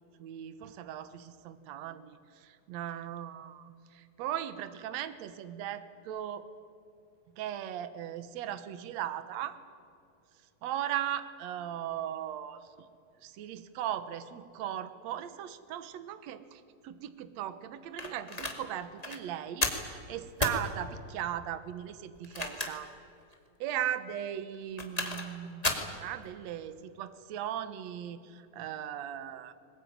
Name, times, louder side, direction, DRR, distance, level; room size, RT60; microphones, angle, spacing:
voice 1, 0.2-6.5 7.4-9.6 10.6-12.9 13.2-22.9 23.6-29.5, right 11 dB, 60° right, 12 dB, 2.0 m, -38 dB
sound 1, 18.0-18.6 19.0-19.2 19.6-19.9 20.4-20.6 22.1-22.9 23.3-23.4 24.5-25.3 25.6-25.9, left 2 dB, 15° left, 1.6 m, -32 dB
21.5 x 20.5 x 9.6 m, 2.6 s
omnidirectional pair, 4.0 m